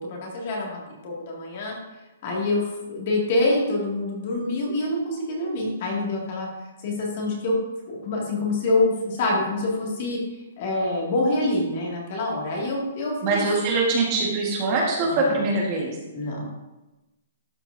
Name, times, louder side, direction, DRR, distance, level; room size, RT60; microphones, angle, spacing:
voice 1, 0.0-1.8 2.2-6.5 6.8-7.6 7.9-10.2 10.6-13.5 15.0-15.5 16.1-16.5, left 2 dB, 35° left, -2 dB, 2.0 m, -26 dB
voice 2, 13.2-16.0, right 3 dB, 25° right, -2 dB, 1.4 m, -23 dB
12.0 x 5.9 x 2.6 m, 1.0 s
hypercardioid pair, 175°, 0 cm